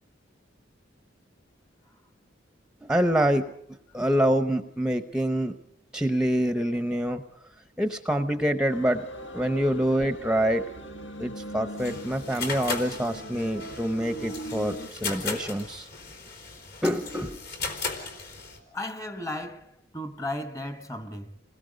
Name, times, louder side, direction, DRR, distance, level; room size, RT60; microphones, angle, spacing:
voice 1, 2.8-3.5 3.9-5.6 5.9-7.2 7.8-9.1 9.3-10.6 11.2-15.9 16.8-17.4, equal, 5° right, 0.7 m, -26 dB
sound 1, 8.7-14.9, right 1 dB, 85° left, 2.3 m, -40 dB
sound 2, 11.8-18.6, left 4 dB, 60° left, 4.1 m, -37 dB
voice 2, 18.7-21.4, left 1 dB, 15° left, 1.1 m, -35 dB
28.5 x 20.5 x 5.2 m
head